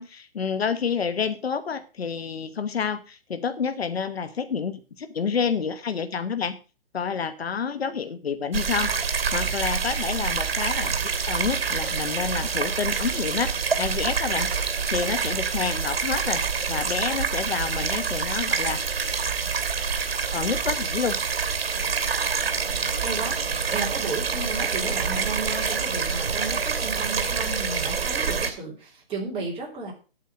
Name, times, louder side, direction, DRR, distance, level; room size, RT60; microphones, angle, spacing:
voice 1, 0.0-6.6 6.9-10.9 11.3-14.5 14.9-16.4 16.7-19.0 20.3-21.2, left 6 dB, 80° left, 10 dB, 1.3 m, -29 dB
sound 1, 8.5-28.5, right 5 dB, 70° right, 2.6 m, -26 dB
voice 2, 22.8-29.9, right 3 dB, 20° right, -2 dB, 3.7 m, -34 dB
9.3 x 7.7 x 7.5 m, 0.35 s
hypercardioid pair, 140°, 30 cm